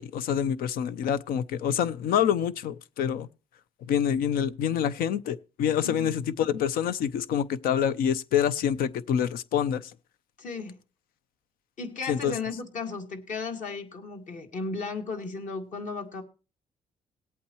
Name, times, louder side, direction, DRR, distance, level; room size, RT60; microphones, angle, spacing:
voice 1, 0.0-3.3 3.9-9.8 12.1-12.3, left 9 dB, 85° left, 0.6 m, -26 dB
voice 2, 10.4-10.8 11.8-16.2, left 4 dB, 60° left, 2.2 m, -35 dB
19.5 x 8.5 x 3.0 m
cardioid pair, 105°, 15 cm